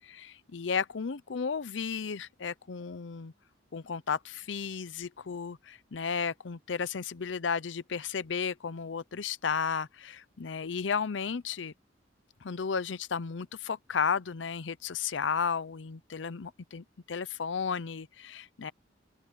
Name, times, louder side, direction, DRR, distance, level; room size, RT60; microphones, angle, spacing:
voice 1, 0.1-3.3 3.7-11.7 12.4-18.7, left 6 dB, 75° left, 0.6 m, -33 dB
open air
head